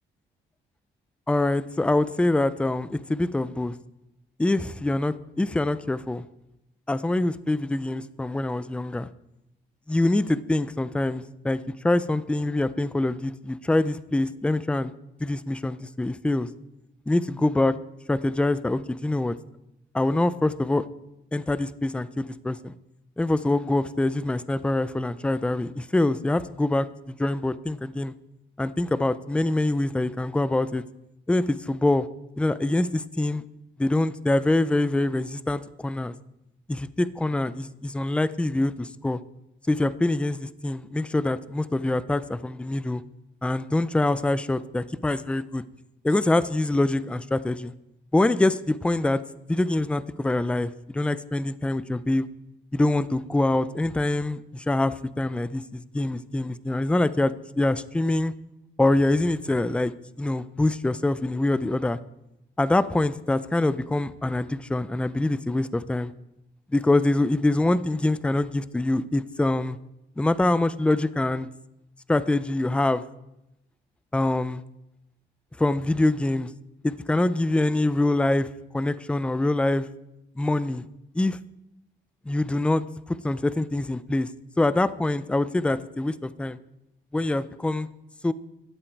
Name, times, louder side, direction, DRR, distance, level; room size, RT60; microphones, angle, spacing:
voice 1, 1.3-3.7 4.4-6.2 6.9-9.1 9.9-14.9 15.2-16.5 17.1-17.8 18.1-19.4 19.9-20.8 21.3-22.7 23.2-28.1 28.6-30.8 31.3-32.1 32.4-33.4 33.8-36.1 36.7-39.2 39.7-43.0 43.4-45.6 46.0-47.7 48.1-49.2 49.5-52.3 52.7-58.3 58.8-59.9 60.2-62.0 62.6-66.1 66.7-69.8 70.2-71.5 72.1-73.0 74.1-74.6 75.6-76.5 76.8-78.5 78.7-79.9 80.4-80.8 81.1-81.4 82.3-82.8 83.1-84.3 84.6-86.6 87.1-87.9 88.2-88.3, left 2 dB, 5° left, 15 dB, 0.4 m, -24 dB
17.0 x 12.5 x 4.6 m, 0.89 s
wide cardioid pair, 165°, 20 cm